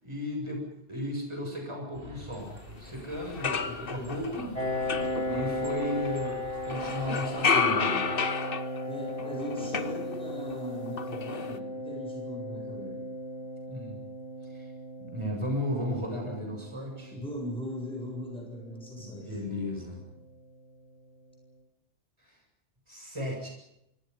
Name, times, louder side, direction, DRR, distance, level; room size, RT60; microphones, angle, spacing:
voice 1, 0.0-2.5 2.8-4.5 5.2-8.1 13.7-14.0 14.5-14.7 15.0-17.1 19.0-20.0 22.2-22.4 22.9-23.5, equal, 25° right, 1 dB, 7.5 m, -35 dB
sound 1, 1.9-7.6, equal, 60° right, 6.5 m, -48 dB
sound 2, 2.8-2.9 3.2-6.3 6.7-10.6 10.9-11.6, left 5 dB, 55° left, 1.2 m, -31 dB
voice 2, 3.4-4.1 8.9-13.0 17.1-19.4, equal, 5° left, 0 dB, 7.5 m, -39 dB
Piano, 4.5-19.9, left 1 dB, 30° left, 6.1 m, -37 dB
27.0 x 25.0 x 5.5 m, 0.81 s
omnidirectional pair, 1.2 m